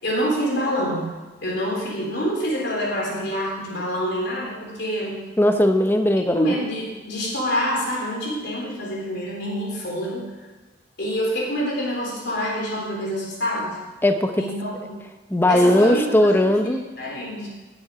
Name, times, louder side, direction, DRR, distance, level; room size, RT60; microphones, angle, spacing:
voice 1, 0.0-1.1 1.4-5.2 6.3-10.2 11.0-13.8 14.4-15.0 15.5-16.4 16.6-17.5, equal, 55° left, -3 dB, 3.8 m, -26 dB
voice 2, 5.4-6.5 14.0-14.4 15.3-16.8, left 1 dB, 10° left, 6 dB, 0.7 m, -18 dB
18.0 x 7.5 x 5.0 m, 1.2 s
head